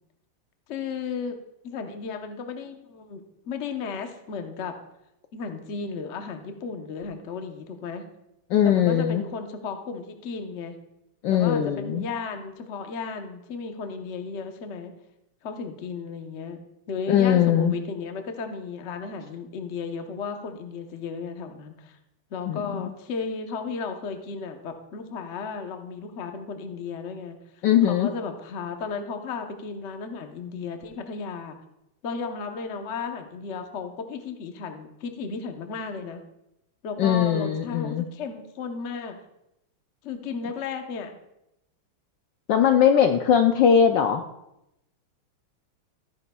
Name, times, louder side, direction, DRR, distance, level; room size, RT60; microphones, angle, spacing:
voice 1, 0.7-1.3 1.6-4.7 5.3-8.0 8.6-10.8 11.3-14.9 15.4-16.6 16.9-22.0 22.3-27.4 27.8-31.6 32.0-36.2 36.8-39.2 40.0-41.2, left 5 dB, 50° left, 5 dB, 0.8 m, -34 dB
voice 2, 8.5-9.2 11.2-12.0 17.1-17.7 22.5-22.9 27.6-28.1 37.0-38.0 42.5-44.2, left 8 dB, 70° left, 6 dB, 1.1 m, -20 dB
14.5 x 9.5 x 2.3 m, 0.85 s
omnidirectional pair, 2.4 m